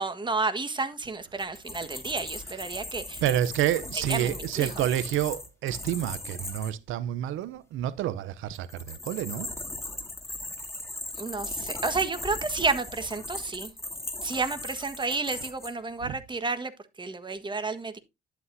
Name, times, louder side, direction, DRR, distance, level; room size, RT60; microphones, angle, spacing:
voice 1, 0.0-3.2 4.1-4.7 11.2-13.7 14.2-16.7 17.0-18.0, right 3 dB, 25° right, 1.5 m, -31 dB
sound 1, 1.4-6.7 8.5-15.7, left 2 dB, 15° left, 2.8 m, -38 dB
voice 2, 3.2-9.5 16.1-16.2, right 12 dB, 85° right, 0.7 m, -29 dB
11.0 x 8.1 x 2.7 m
cardioid pair, 90°, 20 cm